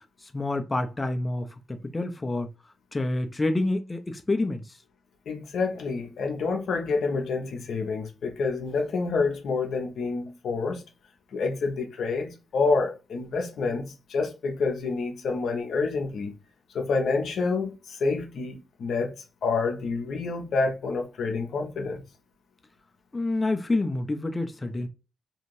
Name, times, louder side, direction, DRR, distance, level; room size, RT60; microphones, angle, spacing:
voice 1, 0.3-2.5 2.9-4.8 23.1-24.9, left 2 dB, 30° left, 0.5 m, -28 dB
voice 2, 5.3-10.8 11.3-16.3 16.7-19.1 19.4-22.0, left 4 dB, 75° left, 0.6 m, -28 dB
2.7 x 2.4 x 3.0 m
supercardioid pair, 45°, 0 cm